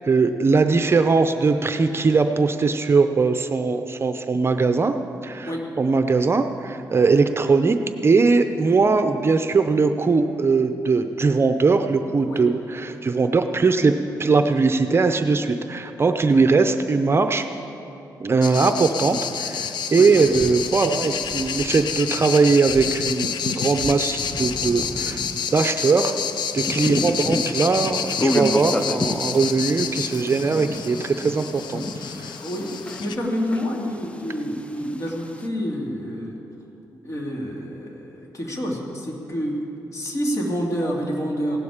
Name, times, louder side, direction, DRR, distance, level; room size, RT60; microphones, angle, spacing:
voice 1, 0.0-4.9 5.2-7.8 8.0-13.9 14.2-17.5 18.2-26.2 26.5-32.3, right 4 dB, 35° right, 7 dB, 0.6 m, -20 dB
sound 1, 18.4-33.2, left 7 dB, 80° left, 0.6 m, -29 dB
sound 2, 20.0-22.9 23.4-25.4, right 1 dB, 10° right, 1.1 m, -38 dB
sound 3, 26.5-33.3 33.5-35.5, left 1 dB, 15° left, 0.6 m, -29 dB
voice 2, 32.4-32.7 33.0-36.4 37.0-39.6 39.9-41.6, equal, 45° left, -1 dB, 2.5 m, -28 dB
17.0 x 11.5 x 5.0 m, 3.0 s
cardioid pair, 95°, 7 cm